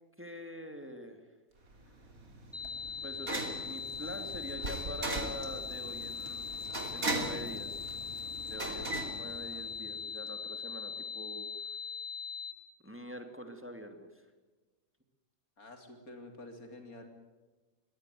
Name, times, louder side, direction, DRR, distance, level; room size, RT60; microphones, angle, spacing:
voice 1, 0.2-1.2 3.0-8.0 8.5-11.5 12.8-14.1, equal, 10° right, 5 dB, 2.6 m, -45 dB
sound 1, 1.7-10.0, right 2 dB, 75° right, 3.4 m, -40 dB
sound 2, 2.5-12.5, left 6 dB, 15° left, 3.7 m, -41 dB
voice 2, 15.6-17.0, left 2 dB, 80° left, 5 dB, 3.6 m, -49 dB
23.0 x 17.5 x 9.4 m, 1.2 s
omnidirectional pair, 1.5 m